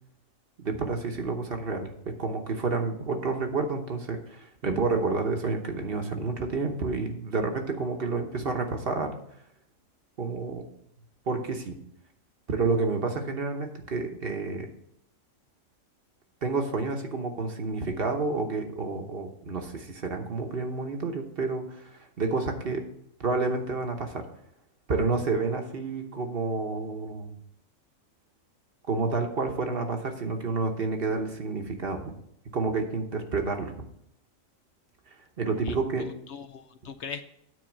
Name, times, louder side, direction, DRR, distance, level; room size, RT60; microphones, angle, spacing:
voice 1, 0.6-9.2 10.2-10.7 11.3-11.8 12.5-14.7 16.4-22.8 23.2-24.3 24.9-27.3 28.9-32.0 32.5-33.7 35.4-36.1, right 3 dB, 45° right, 4 dB, 1.1 m, -29 dB
voice 2, 35.6-37.2, left 6 dB, 65° left, 9 dB, 0.8 m, -41 dB
9.5 x 4.2 x 7.2 m, 0.73 s
omnidirectional pair, 1.4 m